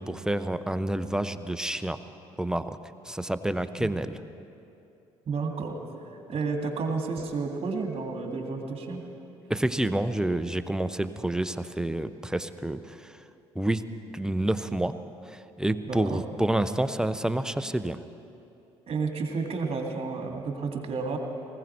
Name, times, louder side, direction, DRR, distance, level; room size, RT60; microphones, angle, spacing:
voice 1, 0.0-2.0 2.4-2.8 3.1-4.2 9.5-13.1 13.5-13.8 14.1-14.9 15.3-18.0, right 1 dB, 5° right, 12 dB, 0.7 m, -28 dB
voice 2, 5.3-5.8 6.3-9.0 15.8-16.2 18.9-21.2, right 4 dB, 40° right, 2 dB, 2.2 m, -31 dB
19.5 x 16.0 x 4.5 m, 2.8 s
figure-of-eight pair, 50°, 15 cm